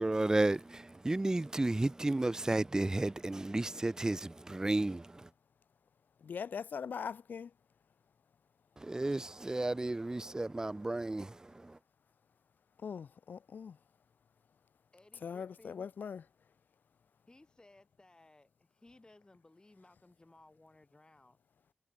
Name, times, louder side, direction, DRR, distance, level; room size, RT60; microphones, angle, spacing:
voice 1, 0.0-5.1 8.8-11.3 11.6-11.7, right 2 dB, 20° right, 0.5 m, -32 dB
voice 2, 6.2-7.5 12.8-13.7 15.2-16.2, left 6 dB, 85° left, 1.2 m, -41 dB
voice 3, 14.9-15.9 17.3-21.4, left 2 dB, 25° left, 7.9 m, -61 dB
cardioid pair, 65°, 3 cm